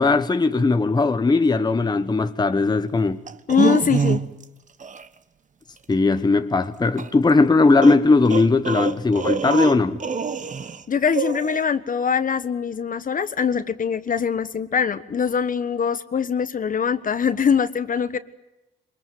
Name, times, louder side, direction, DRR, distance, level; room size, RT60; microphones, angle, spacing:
voice 1, 0.0-3.2 5.9-10.0, left 3 dB, 20° left, 1.1 m, -18 dB
sound 1, 3.3-4.4 4.8-5.0 7.0-7.1 7.8-10.8 11.1-11.6, right 6 dB, 40° right, 1.3 m, -25 dB
voice 2, 3.5-4.2 10.9-18.2, left 7 dB, 45° left, 1.3 m, -23 dB
23.0 x 21.5 x 9.4 m
cardioid pair, 90°, 20 cm